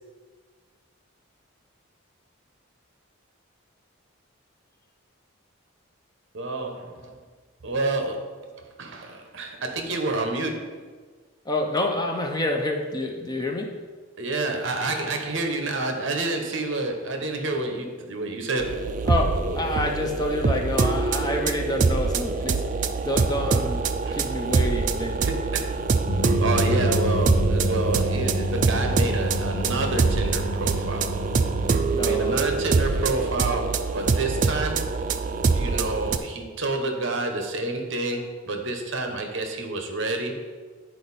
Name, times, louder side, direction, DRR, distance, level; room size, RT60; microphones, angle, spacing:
voice 1, 6.3-7.1 7.6-8.4 8.8-10.7 14.2-18.9 19.4-19.6 24.0-24.2 25.2-25.7 26.4-31.1 32.0-34.9 35.5-40.4, right 2 dB, 60° right, 4 dB, 0.9 m, -28 dB
voice 2, 11.4-13.7 19.0-22.6 23.0-25.2 31.9-32.5, left 1 dB, 20° left, 2 dB, 0.6 m, -28 dB
sound 1, 18.6-36.2, right 4 dB, 40° right, 0.3 m, -25 dB
sound 2, 26.0-33.3, right 1 dB, 70° left, 0.9 m, -28 dB
9.1 x 4.4 x 4.1 m, 1.5 s
head